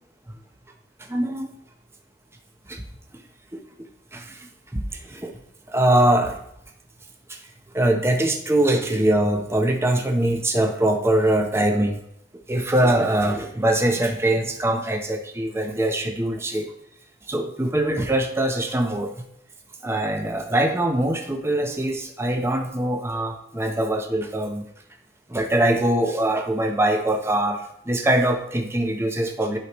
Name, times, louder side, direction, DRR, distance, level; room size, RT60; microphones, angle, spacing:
voice 1, 1.0-1.5 2.7-2.8 3.1-3.2 3.5-3.6 4.1-5.4 5.7-6.4 7.3-7.4 7.7-12.0 12.5-16.7 17.3-19.1 19.8-24.6 25.3-29.6, right 1 dB, 15° right, 3 dB, 0.8 m, -23 dB
11.0 x 4.9 x 3.0 m, 0.73 s
head